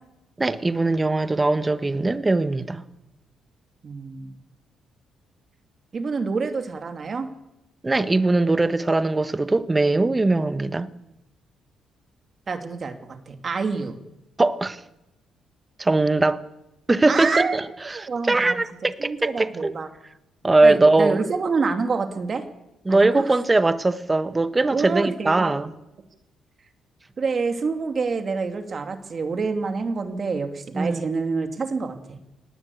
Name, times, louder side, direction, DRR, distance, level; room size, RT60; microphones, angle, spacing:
voice 1, 0.4-2.8 7.8-10.9 14.4-14.8 15.8-16.5 16.9-19.7 20.4-21.2 22.9-25.7 30.7-31.0, right 2 dB, 20° right, 1.3 m, -21 dB
voice 2, 3.8-4.4 5.9-7.3 12.5-14.0 17.1-17.6 17.9-18.6 19.0-19.9 20.6-22.4 22.9-23.3 24.7-25.6 27.2-32.0, right 4 dB, 40° right, 2.6 m, -27 dB
19.0 x 18.0 x 8.4 m
cardioid pair, 90°, 0 cm